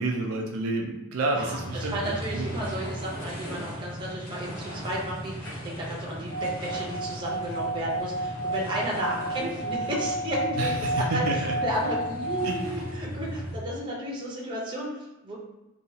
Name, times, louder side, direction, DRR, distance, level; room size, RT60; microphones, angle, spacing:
voice 1, 0.0-2.4 10.6-11.6 12.4-12.8, right 2 dB, 70° right, 0 dB, 0.4 m, -30 dB
voice 2, 1.3-15.4, right 1 dB, 20° right, -5 dB, 0.6 m, -33 dB
sound 1, 1.4-13.6, equal, 85° left, 1.1 m, -37 dB
Singing / Glass, 6.2-12.8, right 1 dB, 15° left, 0.7 m, -31 dB
2.9 x 2.3 x 2.7 m, 1.0 s
head